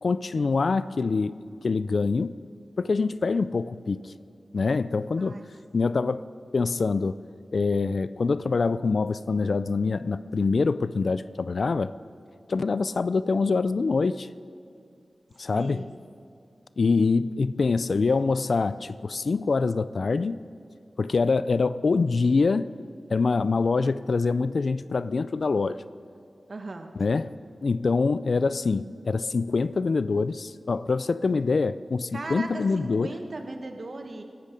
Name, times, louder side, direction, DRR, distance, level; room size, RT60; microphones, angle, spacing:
voice 1, 0.0-1.3 1.6-2.3 2.8-4.1 4.5-5.4 5.7-6.2 6.5-7.2 7.5-11.9 12.5-14.3 15.4-15.8 16.8-20.4 21.0-22.7 23.1-25.8 27.0-27.3 27.6-33.1, left 4 dB, 75° left, 0.4 m, -25 dB
voice 2, 15.5-15.9 26.5-26.9 32.1-34.2, right 2 dB, 65° right, 1.4 m, -37 dB
22.0 x 12.0 x 5.2 m
cardioid pair, 40°, 0 cm